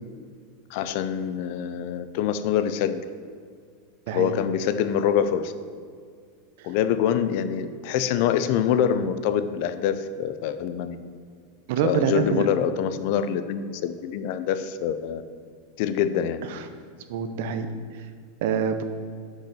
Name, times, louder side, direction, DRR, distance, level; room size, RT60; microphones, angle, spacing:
voice 1, 0.7-3.0 4.1-5.5 6.6-11.0 11.8-15.2 15.8-16.4, left 9 dB, 60° left, 12 dB, 0.5 m, -25 dB
voice 2, 11.7-12.5 16.5-16.6 17.1-17.7 18.4-18.8, right 7 dB, 70° right, 9 dB, 0.7 m, -25 dB
6.1 x 5.6 x 6.7 m, 2.1 s
hypercardioid pair, 115°, 0 cm